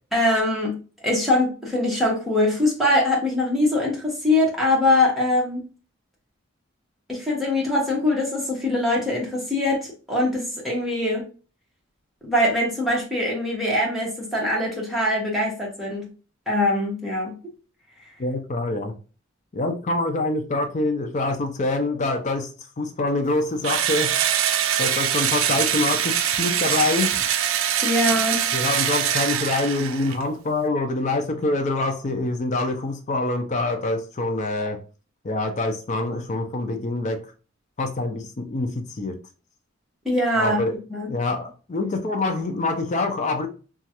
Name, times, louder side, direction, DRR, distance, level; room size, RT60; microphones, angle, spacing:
voice 1, 0.1-0.7 1.0-5.6 7.1-11.2 12.2-16.1 16.5-17.3 27.8-28.4 40.0-40.6 40.9-41.1, left 1 dB, ahead, 1.1 m, -22 dB
voice 2, 18.2-18.9 19.5-24.1 24.8-27.1 28.5-34.8 35.2-37.2 37.8-39.2 40.4-40.7 41.1-43.5, left 2 dB, 35° left, 0.4 m, -25 dB
Engine / Drill, 23.6-30.2, right 9 dB, 75° right, 0.4 m, -23 dB
3.0 x 2.4 x 2.8 m
head